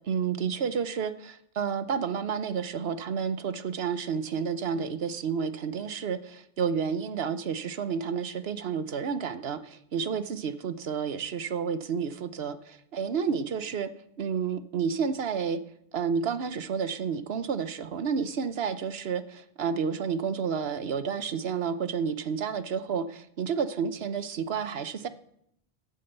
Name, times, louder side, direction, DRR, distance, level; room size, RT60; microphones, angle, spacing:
voice 1, 0.0-13.9 14.2-15.6 15.9-25.1, right 6 dB, 70° right, 11 dB, 1.0 m, -30 dB
13.0 x 7.7 x 8.0 m, 0.76 s
omnidirectional pair, 1.1 m